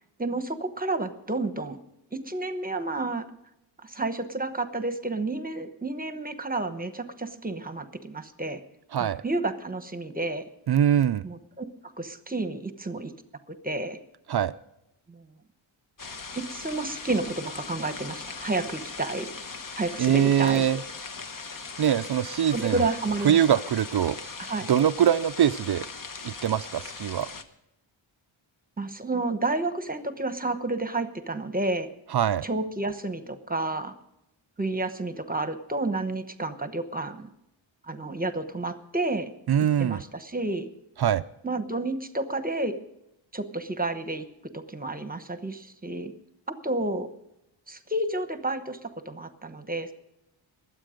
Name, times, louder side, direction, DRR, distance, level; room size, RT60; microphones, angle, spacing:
voice 1, 0.2-1.8 2.1-3.3 3.8-8.6 9.0-10.4 11.2-13.1 13.5-14.0 15.1-15.3 16.4-19.3 19.8-20.8 22.5-23.6 24.4-24.7 28.8-31.9 32.4-33.9 34.6-37.3 37.8-39.3 39.8-40.7 41.4-42.8 43.3-44.3 44.5-46.1 46.6-47.1 47.7-49.9, right 2 dB, 20° right, 9 dB, 1.0 m, -30 dB
voice 2, 10.7-11.3 14.3-14.5 20.0-20.8 21.8-22.8 23.2-24.2 24.7-25.9 26.2-27.3 32.1-32.5 39.5-40.0 41.0-41.2, right 9 dB, 55° right, 14 dB, 0.5 m, -23 dB
sound 1, 16.0-27.4, left 4 dB, 40° left, 1.1 m, -39 dB
22.5 x 8.4 x 5.1 m, 0.83 s
wide cardioid pair, 140°, 49 cm